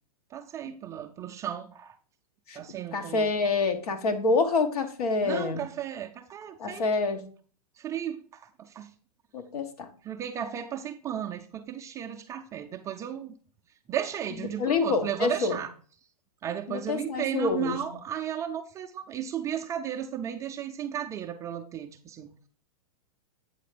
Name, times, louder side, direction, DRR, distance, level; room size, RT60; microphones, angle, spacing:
voice 1, 0.3-1.9 2.5-3.3 5.2-6.8 7.8-8.9 10.0-13.4 13.9-15.7 16.4-22.3, right 9 dB, 15° right, 0.3 m, -34 dB
voice 2, 2.9-5.6 6.6-7.2 9.3-9.9 14.6-15.6 16.7-17.8, left 4 dB, 80° left, 1.1 m, -27 dB
8.5 x 3.3 x 5.0 m
hypercardioid pair, 140°, 19 cm